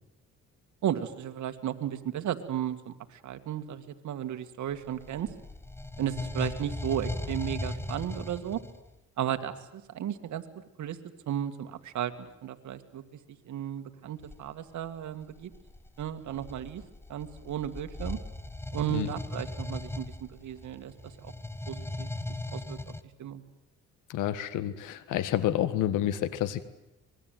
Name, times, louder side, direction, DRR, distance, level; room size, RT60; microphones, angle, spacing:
voice 1, 0.8-5.3 6.0-8.6 9.2-10.4 10.8-11.0 11.3-13.0 13.5-15.5 16.0-16.8 17.1-18.2 18.7-21.3 21.7-22.9 23.2-23.4, right 10 dB, 70° right, 9 dB, 2.1 m, -34 dB
sound 1, 4.8-8.9 14.2-14.4 15.2-23.0, left 2 dB, 10° left, 1.3 m, -38 dB
voice 2, 24.1-26.6, left 12 dB, 90° left, 14 dB, 1.7 m, -29 dB
25.0 x 21.0 x 9.3 m, 0.88 s
cardioid pair, 90°, 30 cm